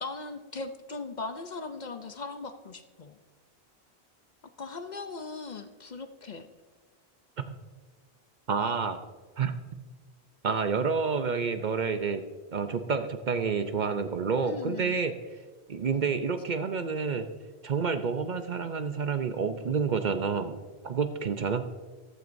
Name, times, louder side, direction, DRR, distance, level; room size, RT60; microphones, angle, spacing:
voice 1, 0.0-3.2 4.6-6.5 14.4-15.0, left 3 dB, 50° left, 8 dB, 0.7 m, -39 dB
voice 2, 8.5-9.0 9.4-9.5 10.4-12.2 12.5-15.1 15.7-17.3 17.6-20.5 20.8-21.7, right 5 dB, 50° right, 8 dB, 0.7 m, -29 dB
14.5 x 12.5 x 2.6 m, 1.4 s
omnidirectional pair, 1.1 m